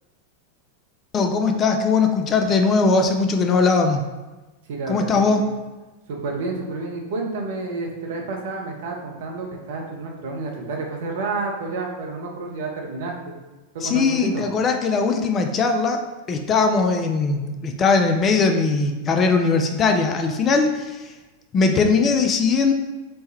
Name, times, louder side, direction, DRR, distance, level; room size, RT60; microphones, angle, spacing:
voice 1, 1.1-4.0 4.9-5.5 13.8-21.1 21.5-22.7, left 4 dB, 25° left, 4 dB, 0.3 m, -20 dB
voice 2, 4.7-5.5 6.1-13.4 13.7-14.1 14.3-14.4, right 3 dB, 55° right, 0 dB, 0.7 m, -30 dB
3.3 x 2.2 x 4.2 m, 1.2 s
figure-of-eight pair, 90°, 0 cm